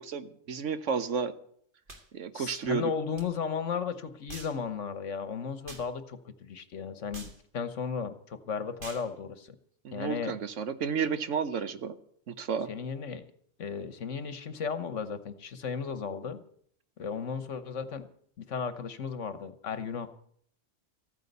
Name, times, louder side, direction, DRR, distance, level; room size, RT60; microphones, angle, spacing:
voice 1, 0.0-1.3 2.1-2.9 9.8-12.0 12.3-12.7, right 6 dB, 70° right, 12 dB, 1.3 m, -32 dB
sound 1, 1.9-2.1 3.2-3.3 4.3-4.6 5.7-5.9 7.1-7.4 8.8-9.1, right 2 dB, 40° right, 2.0 m, -45 dB
voice 2, 2.3-9.6 9.9-10.4 12.7-13.3 13.6-16.4 17.0-18.1 18.4-20.1, left 6 dB, 70° left, 12 dB, 1.4 m, -35 dB
14.5 x 9.5 x 8.1 m, 0.62 s
omnidirectional pair, 1.3 m